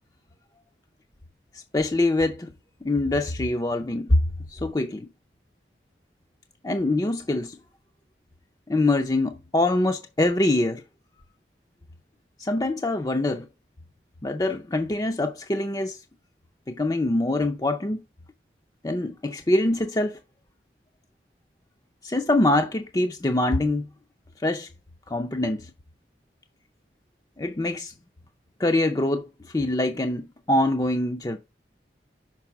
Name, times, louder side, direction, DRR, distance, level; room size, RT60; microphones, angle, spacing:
voice 1, 1.5-2.5 2.8-4.2 4.5-5.1 6.6-7.6 8.7-10.8 12.4-13.5 14.2-16.0 16.7-18.0 18.8-20.2 22.0-23.9 24.4-24.7 25.1-25.7 27.4-27.9 28.6-29.3 29.5-31.4, left 2 dB, 20° left, 0.5 m, -24 dB
6.0 x 4.7 x 5.8 m
head